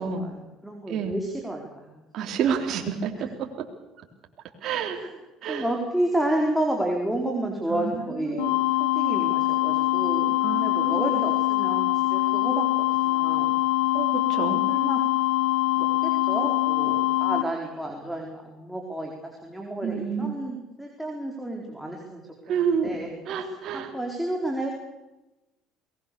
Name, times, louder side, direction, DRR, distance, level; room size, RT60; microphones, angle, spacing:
voice 1, 0.0-2.0 3.2-3.3 4.9-5.1 5.5-13.6 14.7-15.0 15.8-22.3 22.6-23.1 23.7-24.7, right 1 dB, ahead, 0 dB, 4.4 m, -31 dB
voice 2, 2.1-3.5 4.6-5.0 5.4-5.6 7.7-8.5 10.4-11.2 13.9-14.6 19.8-20.4 22.5-23.0 23.3-23.9, right 7 dB, 60° right, 3 dB, 3.8 m, -29 dB
sound 1, 8.4-17.4, left 16 dB, 90° left, 1.1 m, -23 dB
23.0 x 20.5 x 7.0 m, 1.0 s
supercardioid pair, 95°, 0 cm